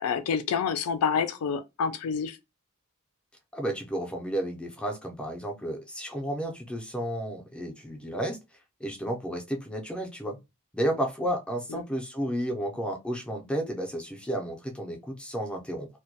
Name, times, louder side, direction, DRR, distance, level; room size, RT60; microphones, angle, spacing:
voice 1, 0.0-2.4 11.7-11.8, left 6 dB, 75° left, 0.3 m, -28 dB
voice 2, 3.5-8.4 8.8-10.4 10.7-15.9, right 1 dB, 5° left, 0.4 m, -32 dB
2.2 x 2.1 x 2.7 m
head